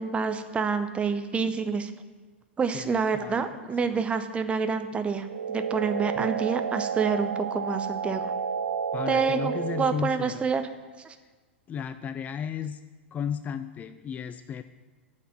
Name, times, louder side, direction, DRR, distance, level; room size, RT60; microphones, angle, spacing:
voice 1, 0.0-1.9 2.6-8.3 9.1-10.6 11.0-11.2, right 5 dB, 20° right, 9 dB, 0.8 m, -28 dB
voice 2, 2.7-3.5 3.8-4.0 6.2-6.3 8.9-10.5 11.7-12.8 13.1-14.6, left 8 dB, 25° left, 11 dB, 0.4 m, -34 dB
sound 1, 5.2-10.2, right 7 dB, 75° right, 0.4 m, -31 dB
9.4 x 5.9 x 7.6 m, 1.4 s
figure-of-eight pair, 95°, 6 cm